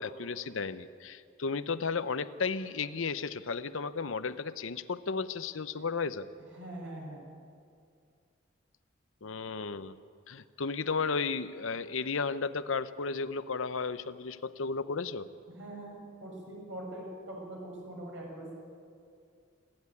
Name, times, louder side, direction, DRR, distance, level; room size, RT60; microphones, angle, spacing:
voice 1, 0.0-6.3 9.2-10.0 10.3-15.3, left 4 dB, 80° left, 13 dB, 0.7 m, -34 dB
voice 2, 6.6-7.2 15.5-18.6, right 1 dB, 65° right, -1 dB, 6.6 m, -43 dB
27.5 x 10.5 x 9.6 m, 2.4 s
head